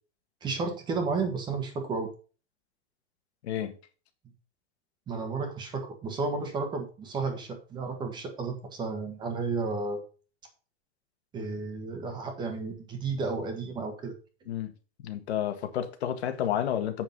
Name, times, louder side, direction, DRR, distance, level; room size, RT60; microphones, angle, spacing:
voice 1, 0.4-2.1 5.1-10.0 11.3-14.1, right 4 dB, 15° right, 1.3 m, -32 dB
voice 2, 15.0-17.0, left 10 dB, 90° left, 1.8 m, -30 dB
8.1 x 6.0 x 5.3 m
supercardioid pair, 175°, 32 cm